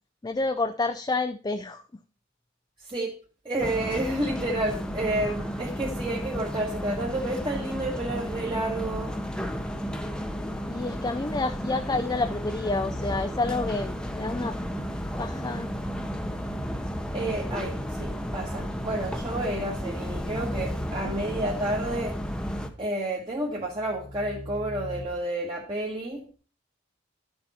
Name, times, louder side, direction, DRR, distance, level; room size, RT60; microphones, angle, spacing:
voice 1, 0.2-1.8 10.7-14.5 15.2-15.7, left 3 dB, 20° left, 8 dB, 0.4 m, -29 dB
voice 2, 3.4-9.2 17.1-22.2 22.8-26.3, right 1 dB, 25° right, -3 dB, 1.4 m, -30 dB
sound 1, 3.6-22.7, equal, 5° left, 0.8 m, -33 dB
sound 2, 11.4-13.7 15.8-18.4 19.0-21.5 23.5-25.1, left 1 dB, 50° left, 0.9 m, -41 dB
11.0 x 7.0 x 4.2 m, 0.39 s
head